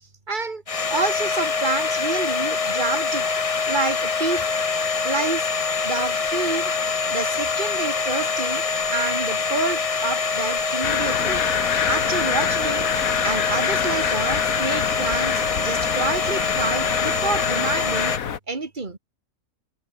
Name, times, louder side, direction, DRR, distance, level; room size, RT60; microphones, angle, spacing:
voice 1, 0.3-0.6 0.9-3.2 3.7-4.5 5.0-5.5 5.8-6.7 7.1-8.6 8.9-11.4 11.9-12.9 13.2-18.1 18.5-19.0, right 3 dB, 35° right, 2.4 m, -28 dB
Domestic sounds home sounds, 0.7-18.2, left 5 dB, 30° left, 0.8 m, -25 dB
sound 1, 10.8-18.4, left 8 dB, 75° left, 1.7 m, -27 dB
omnidirectional pair, 1.5 m